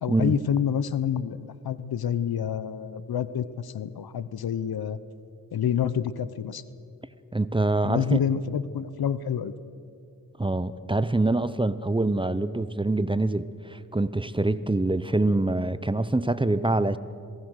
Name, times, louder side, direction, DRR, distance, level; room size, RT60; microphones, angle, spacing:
voice 1, 0.0-5.0 5.5-6.6 7.8-9.5, left 8 dB, 80° left, 0.9 m, -28 dB
voice 2, 7.3-8.2 10.4-17.0, right 2 dB, 15° right, 0.8 m, -25 dB
27.0 x 19.0 x 6.5 m
cardioid pair, 65°, 37 cm